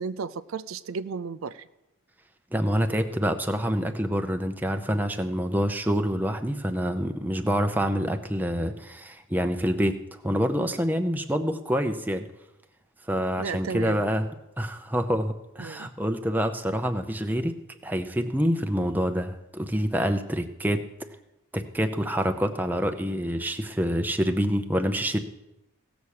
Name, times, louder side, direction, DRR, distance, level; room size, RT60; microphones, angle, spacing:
voice 1, 0.0-1.7 13.4-14.1 15.6-15.9, right 5 dB, 80° right, 13 dB, 0.5 m, -34 dB
voice 2, 2.5-12.3 13.1-14.3 14.6-17.6 17.8-20.8 21.5-25.2, equal, 10° right, 7 dB, 0.7 m, -26 dB
17.0 x 7.1 x 6.4 m, 0.93 s
head